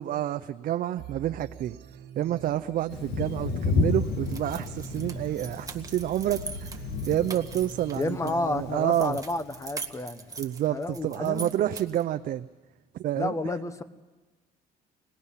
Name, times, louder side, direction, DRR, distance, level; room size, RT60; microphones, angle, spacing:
voice 1, 0.0-1.8 2.2-6.8 7.1-9.2 10.4-12.5 13.0-13.3, right 12 dB, 55° right, 0.6 m, -28 dB
sound 1, 1.0-8.4, right 8 dB, 75° right, 1.4 m, -46 dB
Thunder, 2.9-9.7, left 4 dB, 75° left, 1.6 m, -32 dB
sound 2, 4.3-8.3 8.9-12.1, right 4 dB, 20° right, 1.4 m, -42 dB
voice 2, 7.9-10.4 10.7-11.5 13.2-13.8, left 2 dB, 20° left, 1.2 m, -31 dB
27.5 x 19.5 x 5.7 m
cardioid pair, 110°, 17 cm